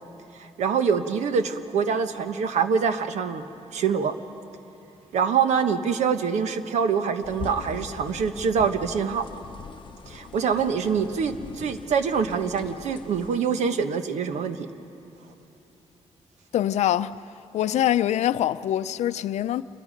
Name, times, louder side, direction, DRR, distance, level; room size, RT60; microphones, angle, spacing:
voice 1, 0.4-3.4 3.7-4.1 5.1-9.2 10.1-14.7, right 6 dB, 90° right, 1.2 m, -25 dB
sound 1, 7.2-13.4, left 7 dB, 45° left, 0.7 m, -42 dB
voice 2, 16.5-17.2 17.5-19.6, left 11 dB, 80° left, 0.5 m, -24 dB
27.5 x 23.0 x 5.2 m
wide cardioid pair, 155°, 11 cm